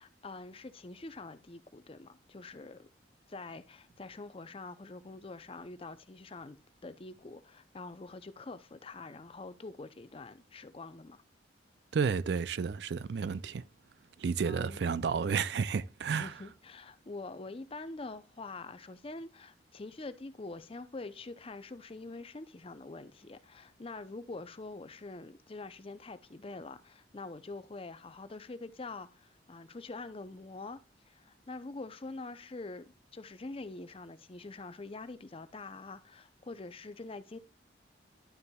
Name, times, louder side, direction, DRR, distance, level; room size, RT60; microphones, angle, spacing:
voice 1, 0.0-2.9 3.3-6.6 6.8-11.2 14.4-14.8 16.1-30.8 31.1-37.4, left 3 dB, 30° left, 0.6 m, -45 dB
voice 2, 11.9-13.6 14.2-16.3, right 5 dB, 60° right, 0.4 m, -31 dB
11.5 x 6.8 x 2.3 m
head